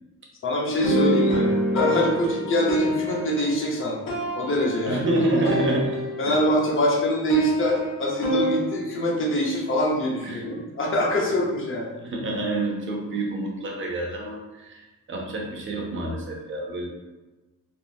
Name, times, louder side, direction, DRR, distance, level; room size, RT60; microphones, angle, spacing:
voice 1, 0.4-4.0 4.3-5.0 6.2-11.9, equal, 40° left, -3 dB, 0.7 m, -24 dB
sound 1, 0.8-6.6 6.8-8.7, equal, 70° left, 1.3 m, -26 dB
voice 2, 4.9-6.0 6.3-6.4 10.2-10.5 12.0-16.9, right 1 dB, 35° right, 0 dB, 0.6 m, -27 dB
3.6 x 2.1 x 2.6 m, 1.2 s
cardioid pair, 125°, 34 cm